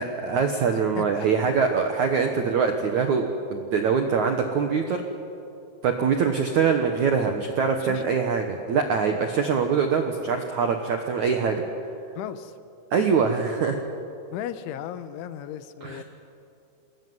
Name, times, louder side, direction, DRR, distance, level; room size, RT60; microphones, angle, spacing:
voice 1, 0.0-5.0 5.8-11.6 12.9-13.8 15.8-16.0, right 6 dB, 75° right, 5 dB, 1.7 m, -23 dB
voice 2, 0.7-1.3 7.8-8.1 12.2-12.5 14.3-16.0, left 11 dB, 85° left, 11 dB, 3.4 m, -36 dB
27.5 x 21.0 x 9.6 m, 2.7 s
omnidirectional pair, 5.5 m